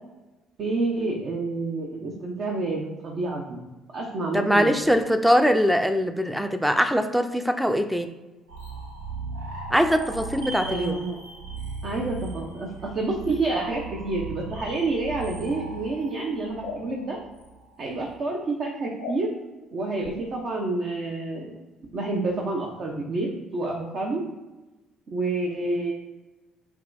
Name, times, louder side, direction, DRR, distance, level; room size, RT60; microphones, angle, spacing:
voice 1, 0.6-3.6 3.9-4.9 10.6-11.2 11.8-17.2 17.8-19.3 19.7-21.6 21.9-24.2 25.1-25.9, right 2 dB, 50° right, 0 dB, 0.8 m, -28 dB
voice 2, 4.3-8.1 9.7-11.0, equal, 5° right, 8 dB, 0.4 m, -22 dB
sound 1, 8.5-18.1, right 2 dB, 85° right, 0.8 m, -38 dB
sound 2, 16.6-16.8 19.0-19.2 20.0-20.1, left 5 dB, 80° left, 0.5 m, -35 dB
7.0 x 2.4 x 2.6 m, 1.1 s
hypercardioid pair, 55°, 0 cm